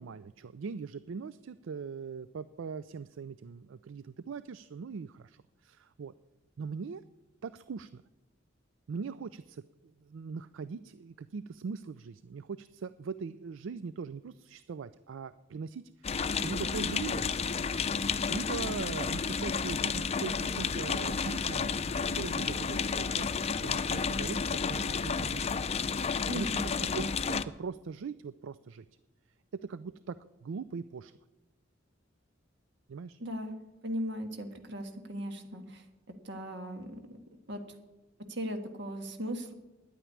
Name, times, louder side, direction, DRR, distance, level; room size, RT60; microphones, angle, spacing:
voice 1, 0.0-6.1 6.6-7.0 7.4-8.0 8.9-9.6 10.0-16.1 16.4-17.2 18.0-25.5 26.3-28.9 29.6-30.2 30.4-31.1 32.9-33.2, right 5 dB, 85° right, 15 dB, 0.4 m, -41 dB
sound 1, 16.0-27.4, left 5 dB, 35° left, 0.5 m, -31 dB
voice 2, 26.3-26.7 33.2-33.5 33.8-35.8 36.2-37.0 37.5-37.6 38.3-39.5, equal, 65° right, 6 dB, 1.6 m, -37 dB
10.0 x 9.1 x 9.5 m, 1.1 s
head